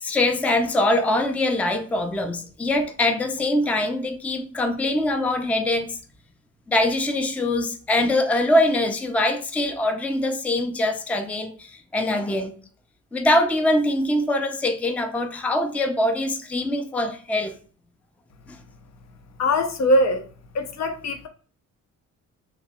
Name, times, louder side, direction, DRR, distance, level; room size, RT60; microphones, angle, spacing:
voice 1, 0.0-6.0 6.7-12.5 13.1-17.5 18.5-18.6, left 1 dB, 5° left, 0.4 m, -23 dB
voice 2, 19.4-20.3 20.5-21.3, left 1 dB, 60° left, 0.6 m, -21 dB
2.9 x 2.3 x 4.0 m
cardioid pair, 90°, 30 cm